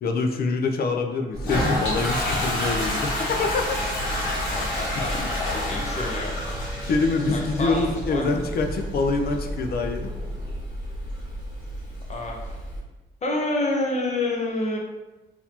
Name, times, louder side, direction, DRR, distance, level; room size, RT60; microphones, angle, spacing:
voice 1, 0.0-3.8 4.0-4.3 5.0-6.0 6.9-10.1, left 3 dB, 50° left, 4 dB, 0.5 m, -26 dB
Toilet flush, 1.3-12.8, left 1 dB, 65° left, 1.3 m, -29 dB
sound 1, 1.6-10.6, right 3 dB, 15° right, 0.6 m, -40 dB
voice 2, 4.3-6.4 7.3-8.2 12.1-12.5 13.2-14.8, left 2 dB, 35° left, -1 dB, 0.9 m, -28 dB
3.9 x 2.9 x 2.8 m, 1.1 s
cardioid pair, 90°, 20 cm